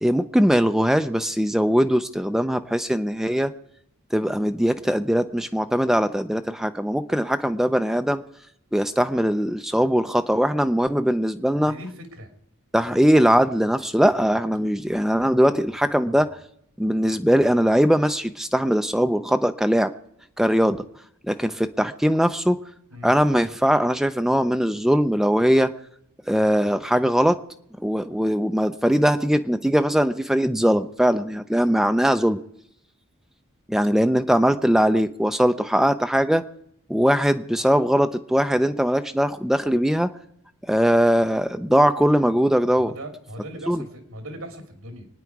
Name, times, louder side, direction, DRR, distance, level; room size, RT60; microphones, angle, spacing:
voice 1, 0.0-3.5 4.1-8.2 8.7-11.7 12.7-16.3 16.8-19.9 20.4-20.8 21.2-22.6 23.0-25.7 26.3-27.4 27.8-32.4 33.7-36.4 36.9-40.1 40.7-42.9 43.7-43.8, equal, ahead, 9 dB, 0.5 m, -20 dB
voice 2, 11.6-12.3 12.9-13.1 22.9-23.1 42.8-45.1, equal, 75° right, 4 dB, 3.1 m, -39 dB
25.5 x 9.7 x 4.7 m, 0.74 s
head